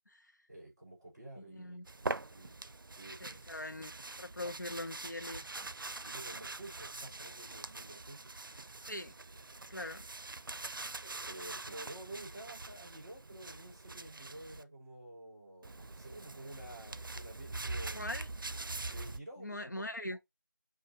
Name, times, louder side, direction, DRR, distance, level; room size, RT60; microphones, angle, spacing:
voice 1, 0.5-2.6 2.9-3.3 4.4-4.5 6.0-8.2 9.3-9.4 11.2-18.1 18.9-20.2, right 1 dB, 10° right, 2.3 m, -50 dB
voice 2, 1.5-1.8 3.2-3.9 4.2-5.5 8.9-9.1 9.7-10.0 17.9-18.3 19.4-20.2, left 1 dB, 60° left, 0.9 m, -41 dB
sound 1, 1.9-14.6 15.6-19.2, right 3 dB, 85° right, 0.5 m, -44 dB
4.4 x 2.6 x 3.7 m
figure-of-eight pair, 180°, 11 cm